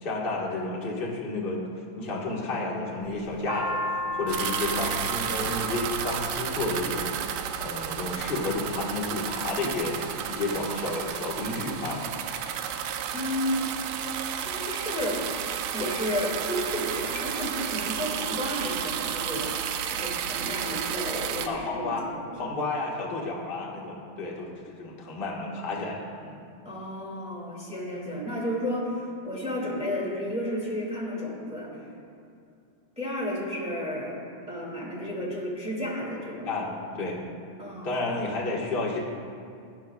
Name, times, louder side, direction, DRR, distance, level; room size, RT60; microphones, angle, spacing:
voice 1, 0.0-1.6 2.0-3.8 4.1-7.1 7.6-12.1 21.5-22.1 22.4-26.4 36.4-36.7 36.9-37.2 37.8-39.0, left 2 dB, 35° left, -4 dB, 0.9 m, -31 dB
sound 1, 3.0-7.3 8.1-8.6 9.2-9.8 10.2-10.3 10.4-11.3, left 2 dB, 40° right, 2.6 m, -34 dB
sound 2, 4.3-21.5, right 9 dB, 80° right, 1.7 m, -32 dB
voice 2, 13.1-13.6 14.3-15.2 15.7-19.5 19.9-22.5 26.6-31.8 33.0-34.2 34.5-36.5 37.6-37.9 38.2-38.3, left 1 dB, ahead, -5 dB, 1.8 m, -32 dB
17.0 x 10.5 x 2.4 m, 2.4 s
omnidirectional pair, 3.6 m